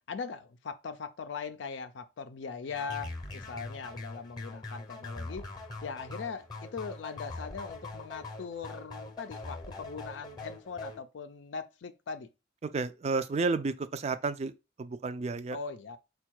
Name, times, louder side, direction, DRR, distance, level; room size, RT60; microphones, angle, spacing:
voice 1, 0.1-5.5 5.8-12.3 15.5-16.0, left 5 dB, 75° left, 0.4 m, -40 dB
sound 1, 2.7-11.0, left 2 dB, 20° left, 0.7 m, -42 dB
voice 2, 12.6-14.5 14.8-15.6, right 4 dB, 35° right, 0.3 m, -31 dB
4.5 x 2.3 x 4.4 m
head